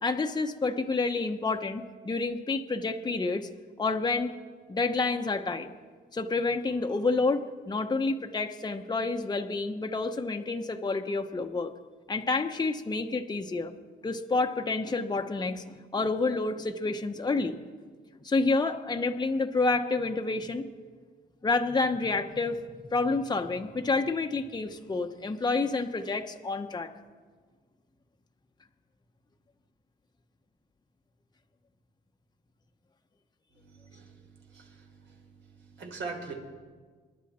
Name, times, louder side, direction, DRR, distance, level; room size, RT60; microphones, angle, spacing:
voice 1, 0.0-3.5 3.8-4.3 4.7-5.7 6.1-11.7 12.1-13.7 14.0-15.6 15.9-17.6 18.2-20.6 21.4-22.6 22.9-26.9, left 3 dB, 20° left, 5 dB, 1.0 m, -29 dB
voice 2, 33.6-35.2 35.7-36.3, right 4 dB, 70° right, 1 dB, 3.9 m, -42 dB
26.5 x 11.0 x 4.3 m, 1.5 s
cardioid pair, 90°, 20 cm